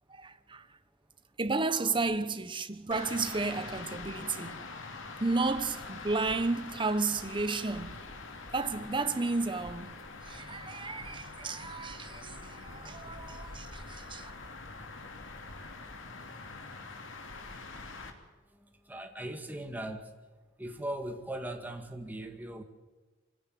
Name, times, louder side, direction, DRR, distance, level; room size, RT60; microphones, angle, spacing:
voice 1, 0.1-0.7 1.4-4.7 5.2-8.0 8.5-14.3, right 3 dB, 25° right, 1.1 m, -33 dB
sound 1, 2.9-18.1, left 3 dB, 70° left, 2.9 m, -44 dB
voice 2, 18.5-20.1 20.6-22.6, right 1 dB, 10° right, 1.9 m, -39 dB
24.0 x 16.0 x 9.3 m
head